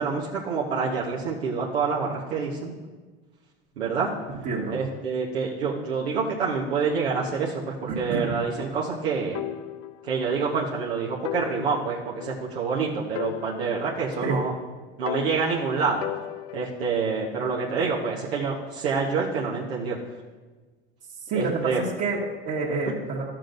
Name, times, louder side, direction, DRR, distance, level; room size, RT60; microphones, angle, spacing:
voice 1, 0.0-2.7 3.8-4.1 4.7-9.4 10.0-14.5 15.0-16.1 16.5-20.0 21.4-21.8 22.8-22.9, right 5 dB, 85° right, -6 dB, 1.3 m, -27 dB
voice 2, 4.4-4.8 7.9-8.4 14.2-14.4 21.3-23.2, right 3 dB, 50° right, -7 dB, 1.8 m, -28 dB
sound 1, 9.3-10.5 10.8-10.9 11.2-12.8 13.2-14.6 15.1-16.9, left 13 dB, 60° left, 0.5 m, -36 dB
13.0 x 7.4 x 2.6 m, 1.3 s
hypercardioid pair, 80°, 31 cm